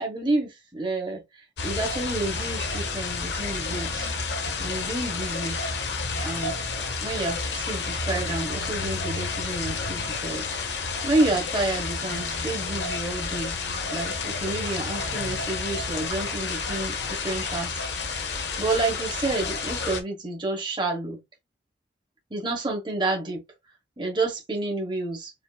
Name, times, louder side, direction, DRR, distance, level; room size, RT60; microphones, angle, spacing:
voice 1, 0.0-4.1 4.6-5.6 6.2-6.7 7.0-10.5 11.0-13.5 13.9-17.7 18.1-18.3 18.6-21.2 22.3-23.4 24.0-25.3, right 2 dB, 25° right, 1.4 m, -29 dB
sound 1, 1.6-20.0, left 4 dB, 75° left, 1.0 m, -30 dB
5.1 x 2.9 x 2.4 m
head